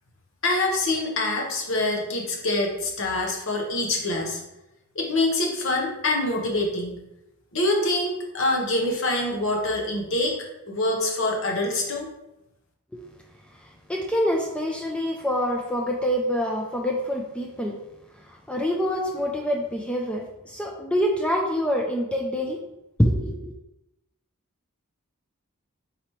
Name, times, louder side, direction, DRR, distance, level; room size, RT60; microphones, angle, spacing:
voice 1, 0.4-4.4 4.9-7.0 7.5-12.1, left 2 dB, 60° left, 0 dB, 1.0 m, -25 dB
voice 2, 13.9-17.8 18.3-22.6 23.0-23.5, equal, 5° left, 0 dB, 0.3 m, -26 dB
4.0 x 3.1 x 4.3 m, 0.90 s
head